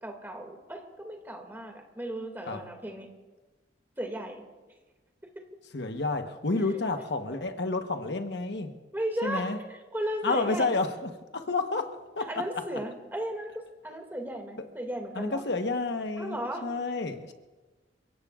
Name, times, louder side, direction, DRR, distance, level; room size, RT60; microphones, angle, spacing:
voice 1, 0.0-3.1 4.0-4.4 5.4-5.5 8.9-10.7 12.3-15.4 16.2-16.7, right 1 dB, 10° right, 2.2 m, -35 dB
voice 2, 5.7-8.7 9.2-9.6 10.2-12.3 15.2-16.4 16.6-17.3, left 3 dB, 70° left, 1.1 m, -30 dB
29.5 x 17.0 x 2.5 m
head